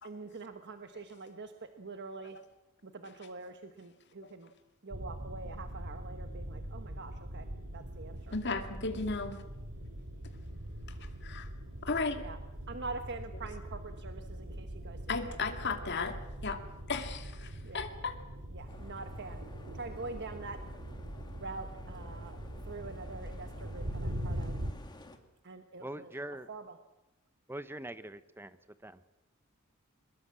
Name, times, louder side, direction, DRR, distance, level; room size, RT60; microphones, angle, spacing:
voice 1, 0.0-2.4 2.8-4.5 4.8-7.5 7.7-8.3 12.2-12.4 12.7-15.0 15.3-15.9 17.6-17.9 18.5-19.4 19.7-20.6 21.4-22.3 22.6-24.6 25.4-26.1 26.5-26.8, right 3 dB, 55° right, 7 dB, 1.3 m, -45 dB
sound 1, 4.9-24.7, right 1 dB, 85° right, 2.7 m, -42 dB
voice 2, 8.3-9.4 10.9-11.5 11.8-12.2 15.1-16.2 16.4-16.6 16.9-18.1, left 4 dB, 55° left, 6 dB, 2.3 m, -35 dB
sound 2, 18.7-25.2, left 1 dB, 20° left, 2.2 m, -54 dB
voice 3, 25.8-26.5 27.5-28.6 28.8-29.0, right 1 dB, 10° right, 13 dB, 0.9 m, -42 dB
23.0 x 21.0 x 7.6 m, 1.0 s
head